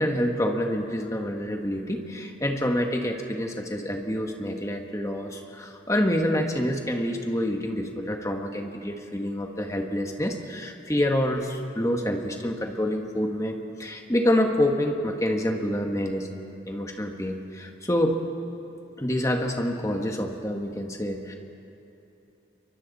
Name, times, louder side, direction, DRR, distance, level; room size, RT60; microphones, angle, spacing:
voice 1, 0.0-16.3 16.7-18.2 19.0-21.4, left 1 dB, 15° left, 3 dB, 1.5 m, -27 dB
28.5 x 24.0 x 4.2 m, 3.0 s
head